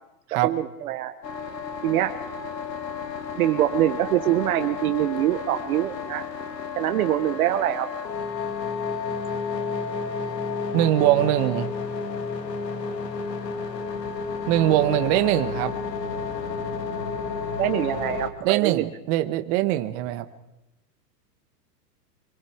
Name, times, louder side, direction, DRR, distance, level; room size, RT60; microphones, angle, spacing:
voice 1, 0.4-1.1 1.8-2.1 3.4-6.2 6.8-7.9 17.6-18.8, right 13 dB, 60° right, 8 dB, 1.4 m, -24 dB
sound 1, 1.2-18.3, left 5 dB, 90° left, 2.6 m, -31 dB
voice 2, 10.7-11.7 14.5-15.7 18.4-20.2, right 14 dB, 45° right, 10 dB, 1.7 m, -22 dB
26.0 x 23.5 x 4.8 m, 0.96 s
hypercardioid pair, 125°, 48 cm